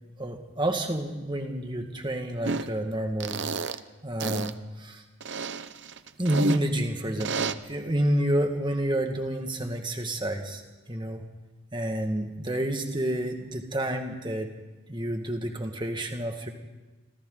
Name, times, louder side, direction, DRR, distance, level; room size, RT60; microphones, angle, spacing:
voice 1, 0.2-3.8 4.0-5.0 6.2-10.6 10.9-11.2 11.7-14.5 14.9-16.5, right 1 dB, 20° right, 4 dB, 1.9 m, -29 dB
sound 1, 2.4-2.7 3.2-3.8 4.2-4.5 5.2-6.6 7.2-7.5, right 4 dB, 50° right, 0.7 m, -30 dB
27.0 x 26.0 x 4.0 m, 1.2 s
head